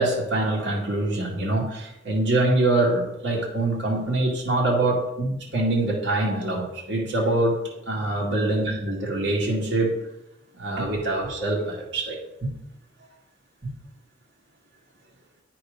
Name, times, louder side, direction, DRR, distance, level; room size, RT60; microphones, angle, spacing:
voice 1, 0.0-7.6 7.9-9.9 10.6-12.5 13.6-13.7, right 2 dB, 60° right, -4 dB, 2.0 m, -24 dB
10.0 x 4.5 x 5.1 m, 0.88 s
head